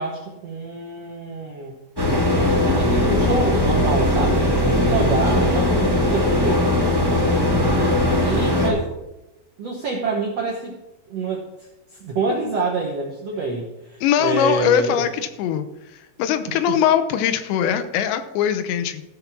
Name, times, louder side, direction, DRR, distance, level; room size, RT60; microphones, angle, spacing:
voice 1, 0.0-1.7 2.7-6.8 8.2-8.9 9.6-10.8 11.1-15.0 16.7-16.8, right 3 dB, 75° right, -1 dB, 1.4 m, -27 dB
sound 1, 2.0-8.7, left 1 dB, 5° right, 1.9 m, -19 dB
voice 2, 14.0-15.7 16.2-19.0, left 9 dB, 90° left, 10 dB, 3.1 m, -21 dB
15.0 x 5.3 x 6.0 m, 0.97 s
omnidirectional pair, 4.9 m